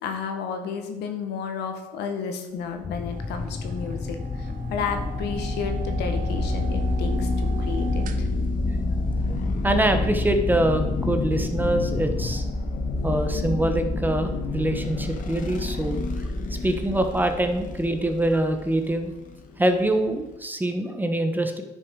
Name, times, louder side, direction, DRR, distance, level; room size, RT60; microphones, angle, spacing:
voice 1, 0.0-8.3, left 6 dB, 80° left, 5 dB, 1.6 m, -32 dB
sound 1, 2.8-12.4, left 4 dB, 20° left, 0.4 m, -33 dB
sound 2, 3.1-8.6, right 7 dB, 55° right, 0.9 m, -40 dB
sound 3, 3.2-20.3, left 2 dB, 50° left, 1.5 m, -29 dB
voice 2, 9.2-12.4 13.0-16.0 16.5-19.1 19.6-21.6, right 1 dB, 10° right, 6 dB, 1.1 m, -24 dB
10.0 x 6.3 x 4.8 m, 1.1 s
cardioid pair, 110°, 17 cm